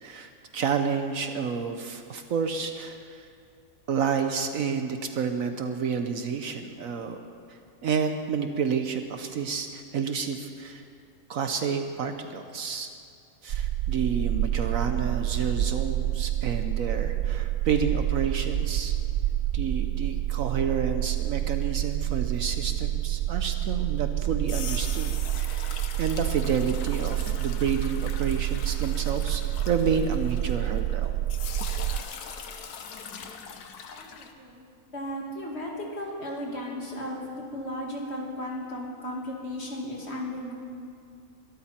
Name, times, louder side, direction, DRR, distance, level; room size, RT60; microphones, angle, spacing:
voice 1, 0.0-3.3 3.9-7.2 7.8-10.8 11.3-12.9 13.4-18.9 19.5-31.2, right 6 dB, 65° right, 7 dB, 1.2 m, -30 dB
sound 1, 13.5-32.0, right 13 dB, 80° right, 0.5 m, -28 dB
sound 2, 24.2-30.9 31.3-34.3, left 6 dB, 80° left, 1.5 m, -41 dB
voice 2, 33.9-37.3 37.5-40.5, left 1 dB, 40° left, -2 dB, 2.8 m, -35 dB
22.5 x 13.0 x 4.4 m, 2.4 s
omnidirectional pair, 1.7 m